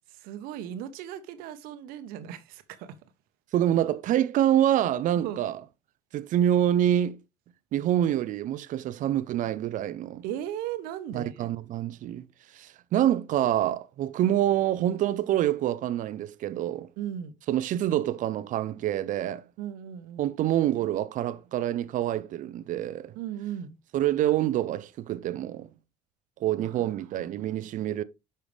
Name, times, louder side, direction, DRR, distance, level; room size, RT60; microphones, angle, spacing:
voice 1, 0.1-3.0 5.2-5.4 10.2-11.5 17.0-17.3 19.6-20.3 23.1-23.8 26.6-27.3, right 10 dB, 75° right, 1.1 m, -37 dB
voice 2, 3.5-5.6 6.1-7.2 7.7-10.2 11.1-12.3 12.5-16.9 17.5-19.4 20.2-23.1 23.9-25.7 26.4-28.0, right 11 dB, 60° right, 0.7 m, -26 dB
9.9 x 5.7 x 3.4 m
supercardioid pair, 70°, 15 cm